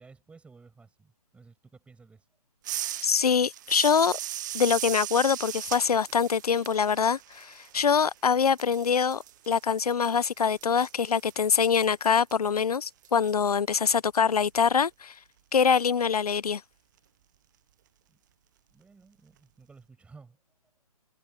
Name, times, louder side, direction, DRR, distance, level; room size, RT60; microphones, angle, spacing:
voice 1, 0.0-2.2 7.7-7.9 18.1-18.2 18.7-20.4, right 4 dB, 5° right, 6.0 m, -54 dB
sound 1, 2.6-8.2 8.5-13.3, right 13 dB, 30° right, 0.5 m, -38 dB
voice 2, 3.0-4.2 4.5-15.1 15.5-16.6, left 6 dB, 75° left, 0.7 m, -24 dB
figure-of-eight pair, 140°, 19 cm